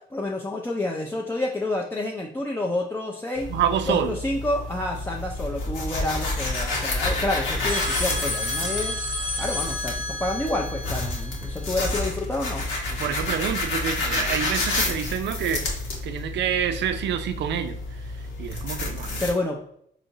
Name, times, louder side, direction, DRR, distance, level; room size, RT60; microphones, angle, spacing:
voice 1, 0.1-3.5 3.9-9.0 9.4-12.6 19.2-19.6, left 2 dB, 10° left, -1 dB, 0.4 m, -29 dB
sound 1, 3.4-19.3, left 2 dB, 75° left, 1.1 m, -29 dB
voice 2, 3.5-4.2 13.0-15.7 16.0-17.8 18.4-19.2, right 9 dB, 65° right, 9 dB, 0.4 m, -27 dB
sound 2, 7.7-12.0, left 1 dB, 30° left, 0.9 m, -31 dB
4.1 x 2.8 x 2.7 m, 0.69 s
cardioid pair, 90°, 20 cm